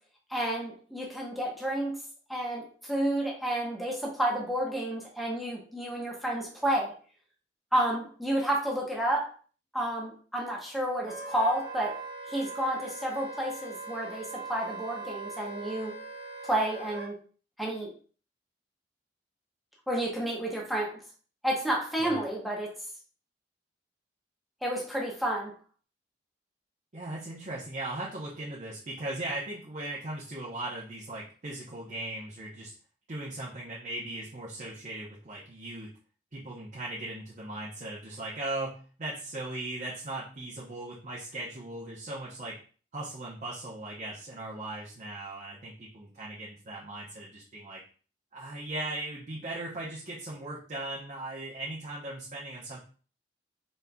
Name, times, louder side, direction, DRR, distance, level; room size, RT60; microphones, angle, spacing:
voice 1, 0.3-2.0 2.3-6.9 7.7-9.3 9.7-12.0 12.3-15.9 16.4-17.1 17.6-17.9 19.9-21.0 21.4-22.7 24.6-25.5, right 1 dB, ahead, -3 dB, 0.8 m, -30 dB
Wind instrument woodwind instrument, 11.0-17.1, right 3 dB, 65° right, 1.1 m, -41 dB
voice 2, 26.9-32.7 33.1-35.9 36.3-42.6 42.9-47.8 48.3-52.8, right 2 dB, 45° right, -5 dB, 0.8 m, -38 dB
4.1 x 3.6 x 2.3 m, 0.41 s
head